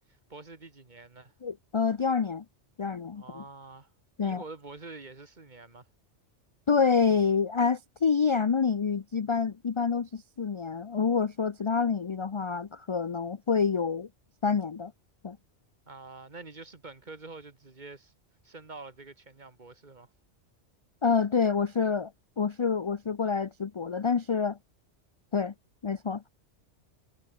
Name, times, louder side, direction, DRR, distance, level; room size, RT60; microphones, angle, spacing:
voice 1, 0.1-1.3 3.2-3.9 4.2-5.9 15.9-18.1 18.4-20.1, right 3 dB, 40° right, 1.9 m, -46 dB
voice 2, 1.4-2.4 2.8-3.4 4.2-4.4 6.7-14.1 14.4-14.9 15.2-15.4 21.0-22.1 22.4-24.6 25.3-25.5 25.8-26.3, left 5 dB, 40° left, 0.4 m, -27 dB
omnidirectional pair, 1.2 m